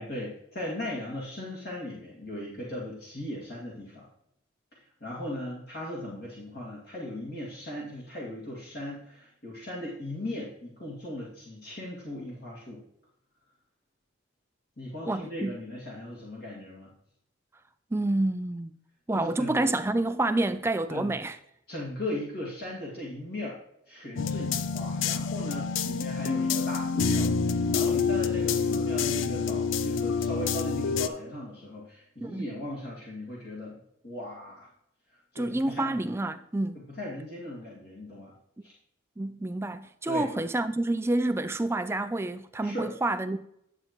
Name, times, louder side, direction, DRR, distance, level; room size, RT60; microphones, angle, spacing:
voice 1, 0.0-4.1 4.7-12.8 14.8-16.9 19.1-19.7 20.9-21.1 21.7-23.6 23.9-34.7 35.3-36.1 36.9-38.3 38.6-38.7 40.1-40.3 42.6-42.9, left 1 dB, 50° left, 2.0 m, -38 dB
voice 2, 15.1-15.6 17.9-18.7 19.1-21.4 32.2-32.5 35.4-36.8 39.2-43.4, right 2 dB, 10° right, 0.3 m, -28 dB
sound 1, 24.2-31.1, left 5 dB, 70° left, 0.4 m, -27 dB
9.6 x 7.8 x 3.0 m
head